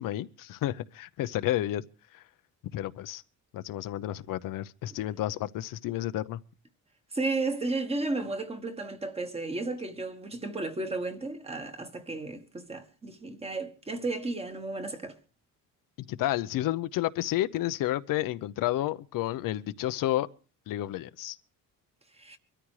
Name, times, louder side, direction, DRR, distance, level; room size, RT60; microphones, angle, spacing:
voice 1, 0.0-1.8 2.1-2.2 2.7-3.2 3.5-6.4 16.1-20.3 20.7-21.4, left 14 dB, 70° left, 0.7 m, -31 dB
voice 2, 7.1-15.1 22.2-22.4, right 3 dB, 15° right, 1.4 m, -33 dB
23.5 x 13.5 x 3.1 m
cardioid pair, 145°, 34 cm